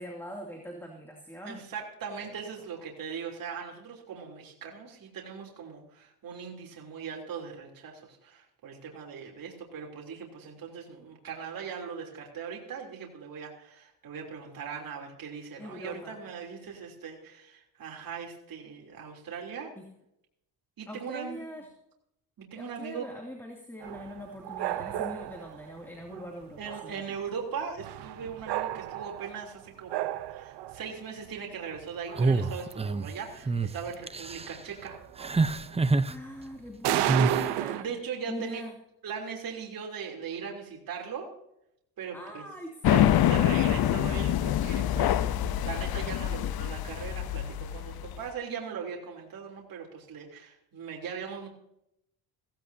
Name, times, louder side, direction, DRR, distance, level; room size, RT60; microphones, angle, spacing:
voice 1, 0.0-1.6 2.1-2.4 15.6-16.2 16.6-16.8 19.8-19.9 20.9-21.7 22.5-27.2 36.1-37.9 38.3-38.7 42.1-43.2 45.2-45.6, left 1 dB, 5° left, 0 dB, 2.6 m, -42 dB
voice 2, 1.4-19.7 20.8-21.4 22.4-23.0 26.6-35.0 37.7-38.6 39.0-41.3 42.0-42.4 42.9-45.2 45.6-51.5, right 6 dB, 60° right, 0 dB, 3.4 m, -39 dB
sound 1, 23.8-25.6 26.1-26.3 26.6-27.2 27.8-29.5 29.9-30.9 31.4-31.5 31.7-33.0 33.3-33.5 33.8-33.9 34.4-34.5 34.8-36.0 36.8-37.8, right 13 dB, 90° right, 0.9 m, -33 dB
sound 2, 32.2-33.1 33.5-33.7 34.1-34.6 35.2-36.1 37.1-37.4, right 3 dB, 15° right, 0.7 m, -26 dB
sound 3, 42.8-48.2, left 11 dB, 65° left, 0.8 m, -26 dB
16.5 x 16.5 x 2.8 m, 0.79 s
cardioid pair, 100°, 39 cm